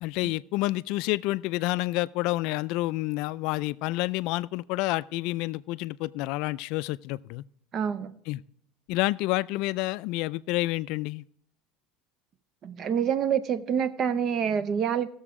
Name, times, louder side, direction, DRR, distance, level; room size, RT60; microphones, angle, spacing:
voice 1, 0.0-7.4 8.3-8.4 8.9-11.2, left 19 dB, 60° left, 0.3 m, -29 dB
voice 2, 7.7-8.1 12.6-15.1, right 8 dB, 40° right, 0.5 m, -27 dB
18.0 x 7.0 x 3.7 m
supercardioid pair, 135°, 0 cm